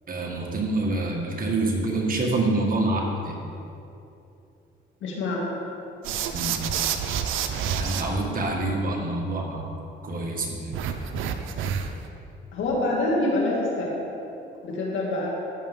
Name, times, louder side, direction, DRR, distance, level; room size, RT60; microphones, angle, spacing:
voice 1, 0.1-3.4 6.3-6.6 7.7-9.7 10.0-10.8, right 2 dB, 45° right, -1 dB, 1.9 m, -26 dB
voice 2, 5.0-5.5 12.5-14.0 14.6-15.3, left 2 dB, 80° left, -3 dB, 2.4 m, -25 dB
sound 1, 6.0-8.0 10.7-12.1, right 7 dB, 90° right, 0.7 m, -28 dB
14.5 x 7.0 x 3.7 m, 2.8 s
cardioid pair, 90°, 20 cm